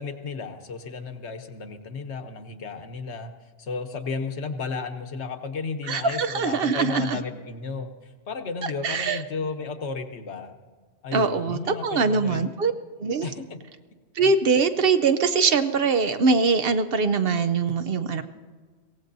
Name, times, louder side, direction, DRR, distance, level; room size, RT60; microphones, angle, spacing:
voice 1, 0.0-3.3 3.6-7.9 8.3-10.5 11.0-12.5 13.2-13.6, left 4 dB, 75° left, 7 dB, 1.2 m, -33 dB
voice 2, 5.9-7.2 8.6-9.2 11.1-12.7 13.0-13.3 14.2-18.2, right 4 dB, 60° right, 10 dB, 0.8 m, -22 dB
23.0 x 17.0 x 2.7 m, 1.5 s
omnidirectional pair, 1.2 m